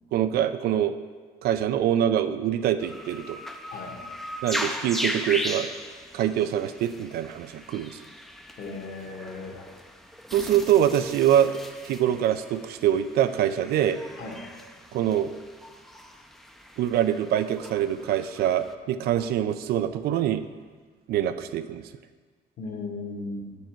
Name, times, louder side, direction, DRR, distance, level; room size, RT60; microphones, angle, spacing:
voice 1, 0.1-1.0 1.4-3.4 4.4-5.7 6.1-8.0 10.3-14.0 14.9-15.3 16.8-20.4 21.1-21.9, right 10 dB, 65° right, 11 dB, 0.4 m, -24 dB
sound 1, 2.8-18.8, equal, ahead, 0.4 m, -38 dB
voice 2, 3.7-4.0 8.6-9.7 14.2-14.4 22.6-23.5, left 3 dB, 55° left, 1 dB, 1.4 m, -36 dB
8.1 x 4.5 x 4.4 m, 1.5 s
cardioid pair, 110°, 17 cm